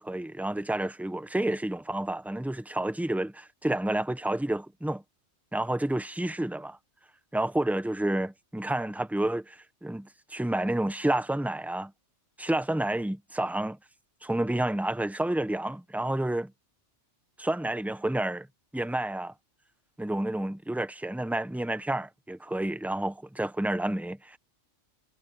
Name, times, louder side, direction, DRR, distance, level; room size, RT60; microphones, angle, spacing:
voice 1, 0.0-5.0 5.5-6.8 7.3-11.9 12.4-13.8 14.2-16.5 17.4-18.5 18.7-19.3 20.0-24.4, right 1 dB, ahead, 0.8 m, -30 dB
omnidirectional pair, 1.2 m